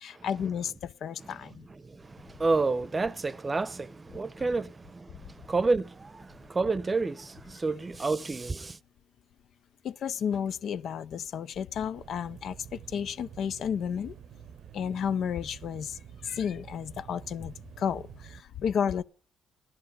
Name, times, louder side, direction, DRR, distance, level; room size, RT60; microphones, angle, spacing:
voice 1, 0.0-1.6 9.8-14.1 14.7-15.9 16.2-19.0, left 8 dB, 65° left, 0.6 m, -32 dB
voice 2, 1.2-8.8, right 3 dB, 25° right, 0.7 m, -30 dB
sound 1, 11.9-18.4, right 8 dB, 65° right, 0.7 m, -48 dB
14.5 x 11.0 x 5.5 m
supercardioid pair, 70°, 0 cm